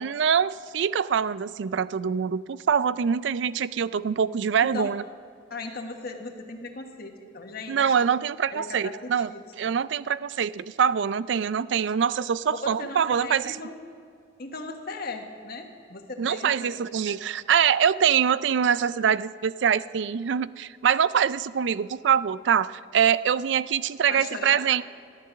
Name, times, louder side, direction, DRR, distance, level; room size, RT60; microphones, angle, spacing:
voice 1, 0.0-5.0 7.7-9.3 9.6-13.6 16.2-24.8, right 7 dB, 65° right, 17 dB, 0.4 m, -24 dB
voice 2, 4.6-4.9 5.5-7.9 8.5-9.7 12.5-13.8 14.4-16.7 17.0-17.2 24.1-24.6, left 3 dB, 55° left, 3 dB, 1.3 m, -38 dB
14.0 x 11.0 x 6.4 m, 2.4 s
head